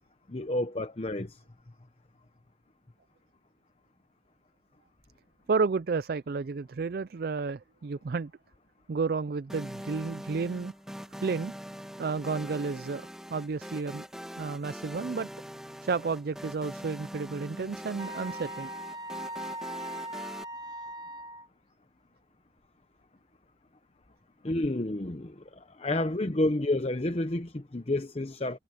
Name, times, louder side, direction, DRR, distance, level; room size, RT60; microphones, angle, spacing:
voice 1, 0.3-1.4 24.4-28.6, left 1 dB, 35° left, 0.8 m, -30 dB
voice 2, 5.5-8.3 8.9-10.7 11.2-11.5 12.0-14.0 14.4-15.3 15.8-18.7, right 4 dB, 55° right, 0.4 m, -31 dB
sound 1, 9.5-20.4, equal, 5° right, 1.7 m, -43 dB
Wind instrument woodwind instrument, 18.0-21.5, right 1 dB, 25° right, 1.3 m, -39 dB
head